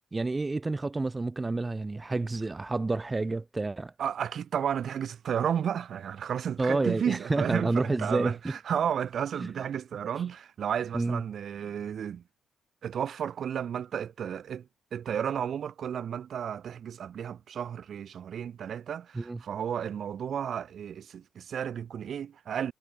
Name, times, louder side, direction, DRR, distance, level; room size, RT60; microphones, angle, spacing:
voice 1, 0.1-3.9 6.6-8.3 9.4-9.5 10.9-11.2 19.1-19.4, right 3 dB, 20° right, 0.7 m, -29 dB
voice 2, 4.0-12.2 12.8-22.7, right 8 dB, 60° right, 2.1 m, -33 dB
cardioid pair, 90°, 0 cm